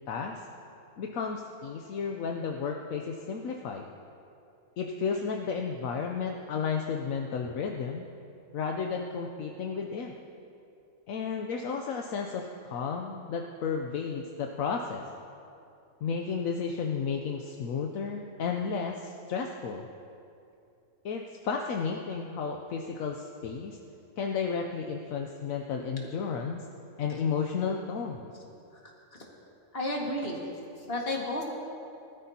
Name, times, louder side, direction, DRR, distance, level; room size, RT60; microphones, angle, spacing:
voice 1, 0.1-0.4 1.0-3.9 4.8-8.1 8.5-10.1 11.1-15.0 16.0-19.9 21.0-23.8 24.2-26.6 27.0-28.3, left 5 dB, 75° left, 2 dB, 1.1 m, -33 dB
voice 2, 29.7-30.4 30.8-31.4, left 1 dB, 45° left, -2 dB, 2.1 m, -32 dB
20.0 x 13.0 x 2.9 m, 2.6 s
omnidirectional pair, 1.5 m